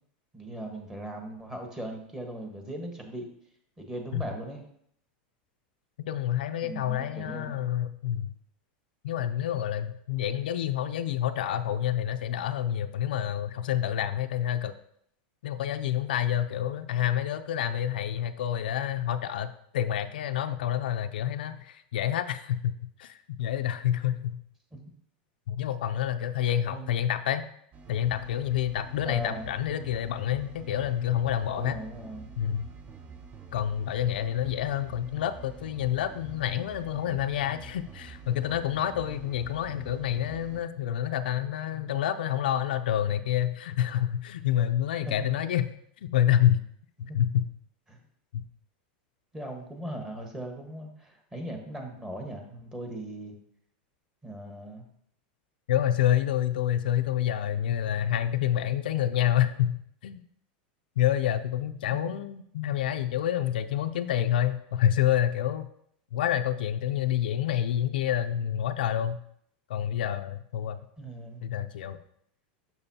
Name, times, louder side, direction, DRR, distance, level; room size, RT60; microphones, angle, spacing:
voice 1, 0.3-3.3 3.8-4.6 6.6-7.6 24.7-24.8 26.7-26.9 29.0-29.5 31.6-32.3 45.1-45.3 47.0-47.2 47.9-48.0 49.3-53.3 54.2-54.8 62.1-62.2 71.0-71.4, right 1 dB, 10° right, 2 dB, 1.3 m, -39 dB
voice 2, 6.1-8.3 9.0-14.7 15.4-22.7 23.0-24.4 25.5-27.5 27.9-31.8 32.4-32.7 33.5-45.7 46.0-46.6 47.0-47.4 48.3-48.4 55.7-59.8 60.0-60.2 61.0-65.7 66.1-69.2 69.7-70.8 71.4-72.0, left 11 dB, 85° left, 8 dB, 0.4 m, -28 dB
sound 1, 27.7-40.6, right 5 dB, 25° right, 0.6 m, -47 dB
6.9 x 6.3 x 2.8 m, 0.67 s
supercardioid pair, 135°, 5 cm